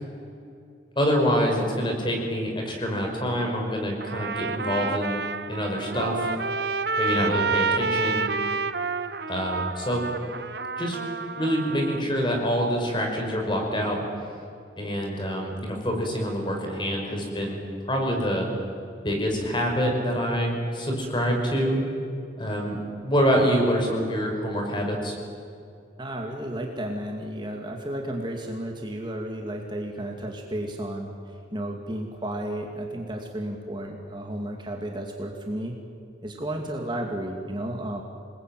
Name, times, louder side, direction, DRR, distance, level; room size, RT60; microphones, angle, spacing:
voice 1, 1.0-5.2 5.5-6.3 7.0-8.3 9.3-10.0 10.8-11.0 11.4-14.0 14.8-18.5 19.0-21.8 22.4-25.1, equal, 25° left, 1 dB, 5.5 m, -26 dB
Trumpet, 4.0-12.0, right 4 dB, 55° right, 1.0 m, -29 dB
voice 2, 26.0-31.1 31.5-35.7 36.2-38.0, right 1 dB, 25° right, 1 dB, 2.2 m, -32 dB
27.5 x 21.0 x 9.1 m, 2.4 s
head